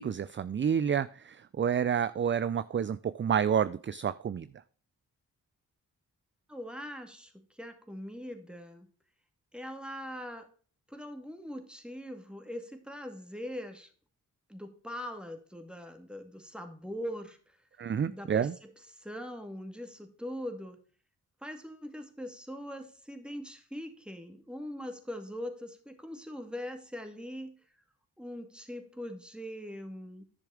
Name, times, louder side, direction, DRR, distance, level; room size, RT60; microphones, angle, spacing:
voice 1, 0.0-4.5 17.8-18.5, right 8 dB, 30° right, 16 dB, 0.4 m, -29 dB
voice 2, 6.5-8.9 9.5-10.5 10.9-13.9 14.5-17.6 18.1-20.8 21.4-27.5 28.2-30.2, equal, ahead, 6 dB, 2.3 m, -42 dB
10.5 x 6.7 x 4.9 m, 0.43 s
supercardioid pair, 40°, 39 cm